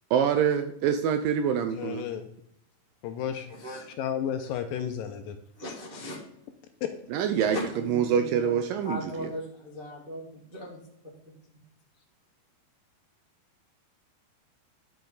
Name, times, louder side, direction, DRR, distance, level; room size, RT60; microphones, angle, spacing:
voice 1, 0.1-2.1 7.1-9.3, right 8 dB, 80° right, 7 dB, 2.0 m, -26 dB
voice 2, 1.6-2.3 3.0-3.5 4.0-5.4 6.8-6.9, left 9 dB, 80° left, 7 dB, 2.1 m, -32 dB
voice 3, 5.6-6.2 7.5-8.5 8.8-10.2 10.5-10.8, left 1 dB, 60° right, -4 dB, 0.5 m, -37 dB
11.5 x 5.9 x 3.9 m, 0.74 s
omnidirectional pair, 4.5 m